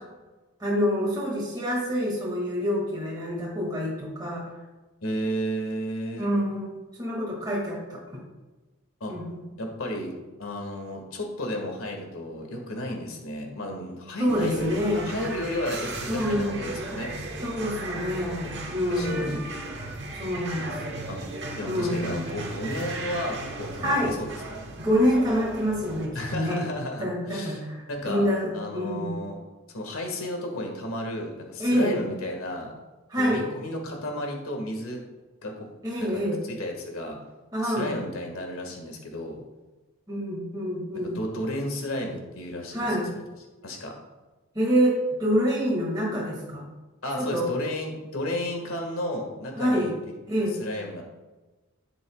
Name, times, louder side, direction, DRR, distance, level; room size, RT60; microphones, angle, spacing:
voice 1, 0.6-4.4 6.2-6.7 7.0-8.0 9.1-9.4 14.2-15.1 16.1-16.7 17.4-19.5 20.1-20.8 21.7-22.2 23.8-24.1 24.8-26.6 27.0-29.1 31.6-32.0 33.1-33.4 35.8-36.4 37.5-37.9 40.1-41.1 42.7-43.1 44.5-46.7 47.1-47.5 49.6-50.0 50.3-50.6, equal, 20° right, -5 dB, 2.2 m, -26 dB
voice 2, 5.0-6.3 9.0-9.2 9.6-10.1 10.4-17.1 18.9-19.4 21.1-21.2 21.6-24.7 26.1-27.6 27.9-28.3 28.5-29.4 29.7-32.7 33.1-35.0 35.4-35.7 36.0-36.1 36.4-37.2 37.6-39.4 40.9-43.0 43.6-43.9 47.0-49.9 50.3-51.0, left 1 dB, 85° left, 2 dB, 1.9 m, -33 dB
sound 1, 14.3-26.1, right 2 dB, 55° right, 1.3 m, -36 dB
11.0 x 8.2 x 2.4 m, 1.2 s
head